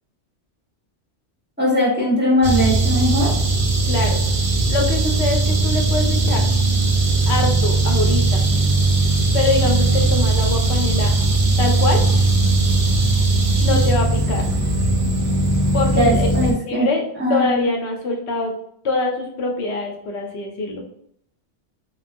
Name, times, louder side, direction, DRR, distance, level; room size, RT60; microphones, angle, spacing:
voice 1, 1.6-3.3 15.9-16.9 17.2-17.6, left 1 dB, 10° right, -6 dB, 0.7 m, -19 dB
sound 1, 2.4-16.5, right 2 dB, 55° right, 0.7 m, -18 dB
voice 2, 3.9-4.2 4.5-6.5 7.3-8.4 9.3-11.1 11.6-12.0 13.6-14.4 15.7-16.3 16.6-18.5 18.8-20.8, left 3 dB, 70° left, 2 dB, 0.9 m, -24 dB
3.0 x 2.3 x 2.5 m, 0.69 s
omnidirectional pair, 1.2 m